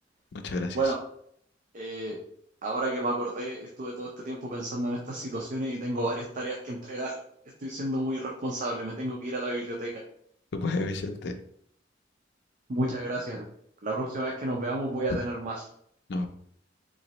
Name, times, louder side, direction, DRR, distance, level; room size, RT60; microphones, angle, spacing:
voice 1, 0.3-0.9 10.5-11.3 16.1-16.3, left 3 dB, 65° left, 5 dB, 0.5 m, -31 dB
voice 2, 1.7-2.2 2.6-7.1 7.6-10.0 12.7-13.5 13.8-15.6, right 1 dB, 45° right, -1 dB, 0.5 m, -31 dB
3.9 x 3.0 x 2.9 m, 0.68 s
head